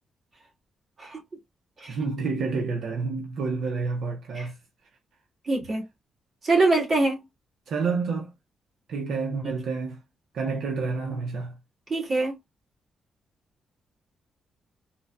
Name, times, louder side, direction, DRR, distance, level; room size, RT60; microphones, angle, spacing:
voice 1, 1.9-4.6 7.7-8.3 8.9-10.0 10.3-11.6, right 4 dB, 75° right, 0.6 m, -29 dB
voice 2, 5.5-5.8 6.4-7.2 11.9-12.4, right 2 dB, 40° right, 1.7 m, -23 dB
3.9 x 2.2 x 2.2 m
cardioid pair, 105°, 0 cm